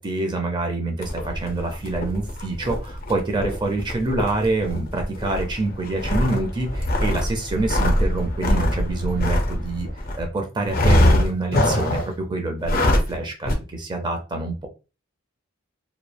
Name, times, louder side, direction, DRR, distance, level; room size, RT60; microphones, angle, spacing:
voice 1, 0.0-9.9 10.1-14.7, right 2 dB, 20° right, 3 dB, 0.5 m, -26 dB
sound 1, 1.0-10.2 10.7-12.2 12.6-13.2 13.5-13.6, left 1 dB, 45° left, 0.5 m, -23 dB
3.0 x 2.0 x 2.2 m, 0.30 s
head